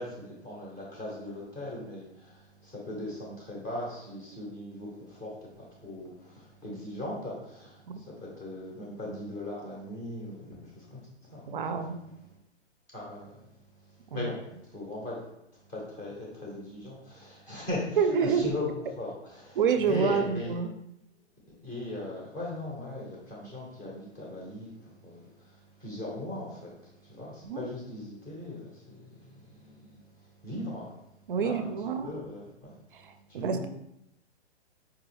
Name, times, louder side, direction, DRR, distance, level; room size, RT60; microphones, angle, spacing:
voice 1, 0.0-11.6 12.9-13.5 13.8-14.4 14.6-15.2 15.5-18.6 19.0-20.5 21.6-30.9 31.4-31.7 32.0-33.0 33.3-33.7, left 1 dB, 10° left, -4 dB, 0.5 m, -39 dB
voice 2, 11.5-12.0 14.1-14.3 18.0-18.5 19.6-20.7 27.4-27.6 31.3-32.1 32.9-33.7, right 6 dB, 50° right, 8 dB, 0.4 m, -28 dB
4.7 x 2.3 x 3.1 m, 0.81 s
hypercardioid pair, 150°, 35 cm